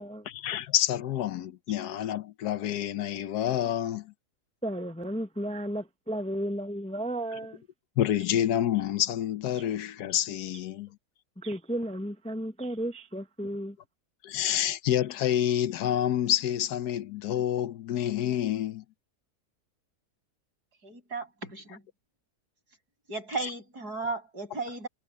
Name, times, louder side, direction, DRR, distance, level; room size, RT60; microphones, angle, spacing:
voice 1, 0.3-4.1 8.0-10.9 14.2-18.8, left 11 dB, 90° left, 1.3 m, -28 dB
voice 2, 4.6-7.6 9.6-9.7 11.4-13.8, right 1 dB, 5° left, 0.5 m, -34 dB
voice 3, 20.8-21.8 23.1-24.9, right 3 dB, 85° right, 8.5 m, -35 dB
omnidirectional pair, 1.6 m